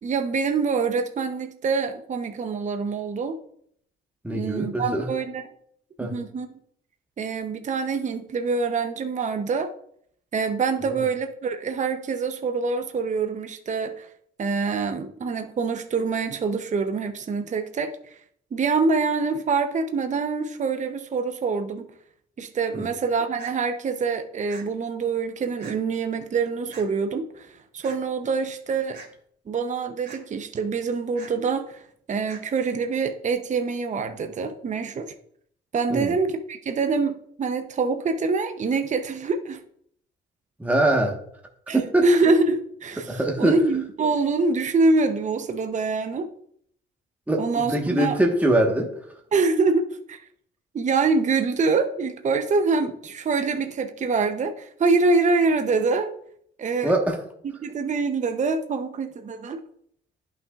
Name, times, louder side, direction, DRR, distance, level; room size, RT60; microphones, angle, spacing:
voice 1, 0.0-3.4 4.3-5.5 6.0-6.5 7.2-9.7 10.3-14.1 14.4-18.1 18.5-21.9 22.4-29.0 29.5-35.1 35.7-39.6 41.7-46.3 47.4-48.2 49.3-49.8 50.1-50.2 50.7-56.1 56.6-56.9 57.6-59.6, right 4 dB, 40° right, 7 dB, 0.7 m, -25 dB
voice 2, 4.2-5.1 6.0-6.1 10.9-11.0 22.7-22.9 35.9-36.1 40.6-41.2 41.7-42.0 43.1-43.6 47.3-48.9 56.8-57.2, right 1 dB, 5° right, 1 dB, 1.3 m, -23 dB
sound 1, 23.4-23.5 24.5-24.6 25.6-25.8 26.7-26.9 27.8-28.0 28.9-29.1 30.0-30.2 31.2-31.3 32.3-32.4, right 5 dB, 55° right, 2.7 m, -42 dB
11.0 x 5.8 x 2.4 m, 0.67 s
cardioid pair, 90°, 20 cm